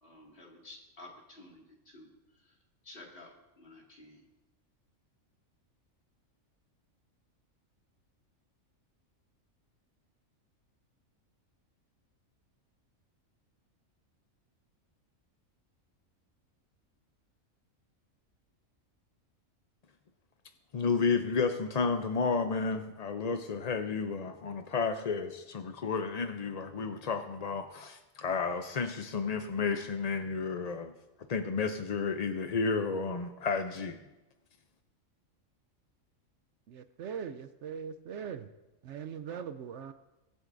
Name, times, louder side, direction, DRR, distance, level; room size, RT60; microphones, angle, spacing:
voice 1, 0.0-2.6 2.8-4.3, left 2 dB, 45° left, -2 dB, 2.3 m, -53 dB
voice 2, 20.7-30.9 31.3-34.0, left 5 dB, 60° left, 7 dB, 0.4 m, -32 dB
voice 3, 36.7-38.5 38.8-39.9, right 7 dB, 65° right, 10 dB, 0.8 m, -40 dB
22.5 x 8.0 x 2.6 m, 1.0 s
omnidirectional pair, 1.4 m